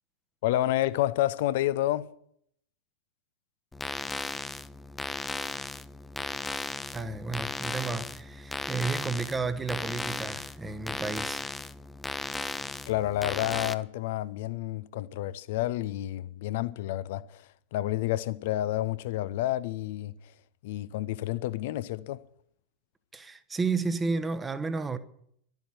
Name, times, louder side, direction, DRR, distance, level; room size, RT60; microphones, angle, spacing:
voice 1, 0.4-2.1 12.9-20.1 20.6-22.2, left 14 dB, 50° left, 0.7 m, -29 dB
sound 1, 3.7-13.7, left 3 dB, 10° left, 0.7 m, -36 dB
voice 2, 6.9-11.5 23.1-25.0, right 4 dB, 15° right, 1.1 m, -32 dB
12.0 x 10.5 x 9.4 m
figure-of-eight pair, 90°, 0 cm